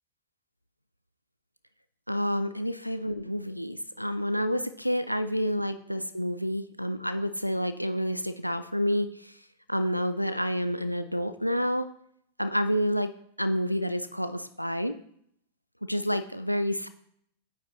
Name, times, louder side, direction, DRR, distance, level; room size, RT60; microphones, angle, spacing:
voice 1, 2.1-9.4 9.7-11.9 12.4-15.0 15.8-16.9, equal, 90° left, 10 dB, 0.3 m, -29 dB
9.0 x 5.6 x 2.9 m, 0.70 s
figure-of-eight pair, 90°, 0 cm